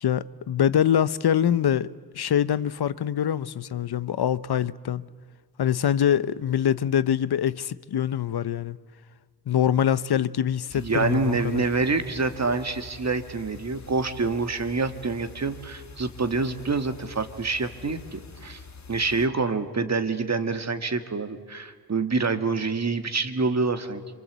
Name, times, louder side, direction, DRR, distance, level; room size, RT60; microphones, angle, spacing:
voice 1, 0.0-5.1 5.6-8.8 9.5-11.6, left 9 dB, 75° left, 0.8 m, -24 dB
sound 1, 10.7-19.3, left 4 dB, 45° left, 1.6 m, -46 dB
voice 2, 10.8-18.6 18.9-24.0, right 4 dB, 45° right, 1.8 m, -26 dB
27.0 x 26.0 x 8.1 m
wide cardioid pair, 120°, 39 cm